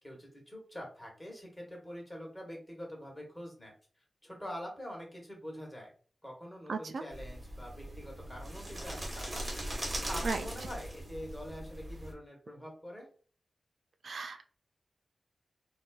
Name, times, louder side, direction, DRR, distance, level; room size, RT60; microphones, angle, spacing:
voice 1, 0.0-5.9 6.2-9.5 10.1-13.1, equal, 15° left, -1 dB, 1.4 m, -45 dB
voice 2, 6.7-7.0 10.2-10.5 14.0-14.4, right 4 dB, 80° right, 6 dB, 0.3 m, -35 dB
sound 1, 7.1-12.1, right 1 dB, 35° right, 1.3 m, -40 dB
3.7 x 2.5 x 2.4 m, 0.41 s
wide cardioid pair, 80°, 0 cm